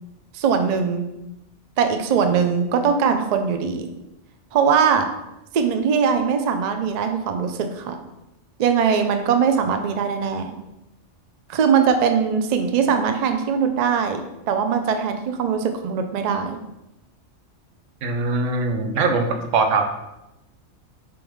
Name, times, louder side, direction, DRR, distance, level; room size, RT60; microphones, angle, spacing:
voice 1, 0.3-1.1 1.8-3.9 4.5-5.1 5.5-8.0 8.6-10.5 11.5-14.2 14.5-16.6, right 6 dB, 75° right, 6 dB, 0.3 m, -21 dB
voice 2, 18.0-19.8, right 3 dB, 90° right, 4 dB, 1.0 m, -21 dB
4.8 x 3.5 x 3.1 m, 0.92 s
omnidirectional pair, 1.2 m